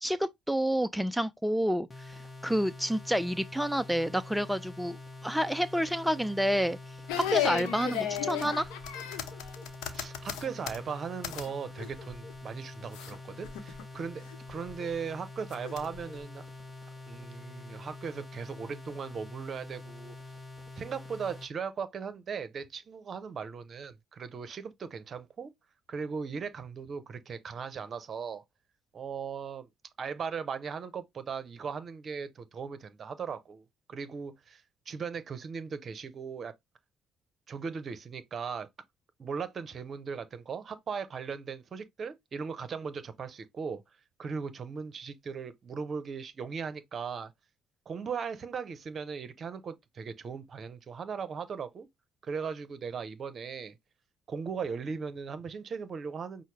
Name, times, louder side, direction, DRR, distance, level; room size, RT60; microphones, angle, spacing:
voice 1, 0.0-5.0 5.2-6.8 7.2-8.7, equal, 5° right, 0.4 m, -29 dB
sound 1, 1.9-21.5, left 2 dB, 20° left, 0.9 m, -46 dB
sound 2, 7.1-11.5 11.8-12.3 12.9-13.1 13.4-13.8 14.3-14.9 15.5-16.2, left 10 dB, 80° left, 0.7 m, -34 dB
voice 2, 9.9-14.2 14.5-16.4 17.1-20.1 20.8-25.5 25.9-28.4 28.9-29.7 30.0-36.5 37.5-38.7 39.2-43.8 44.2-47.3 47.9-51.9 52.2-53.8 54.3-56.4, right 6 dB, 45° right, 0.8 m, -38 dB
5.6 x 2.1 x 3.3 m
supercardioid pair, 65°, 0 cm